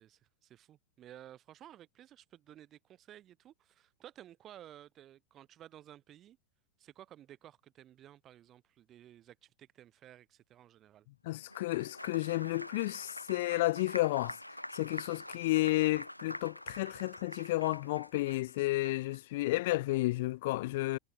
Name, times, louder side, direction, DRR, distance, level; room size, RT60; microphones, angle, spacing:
voice 1, 0.0-6.4 6.8-11.1, right 12 dB, 30° right, 5.7 m, -55 dB
voice 2, 11.3-14.4 14.7-21.0, left 19 dB, 50° left, 0.5 m, -32 dB
Applause, 11.4-19.2, left 1 dB, 90° left, 2.1 m, -46 dB
figure-of-eight pair, 90°, 0 cm